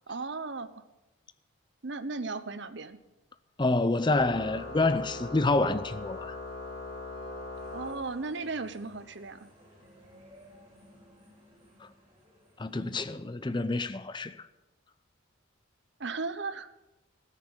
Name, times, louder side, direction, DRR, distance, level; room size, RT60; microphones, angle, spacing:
voice 1, 0.1-0.8 1.8-3.0 7.7-9.5 16.0-16.7, right 3 dB, 60° right, 0.8 m, -36 dB
voice 2, 3.6-6.4 11.8-11.9 12.6-14.4, left 2 dB, 20° left, 0.5 m, -28 dB
Organ, 4.1-8.6, left 2 dB, 55° left, 3.4 m, -40 dB
sound 1, 7.5-13.2, equal, 15° right, 5.8 m, -58 dB
14.0 x 6.6 x 9.8 m
head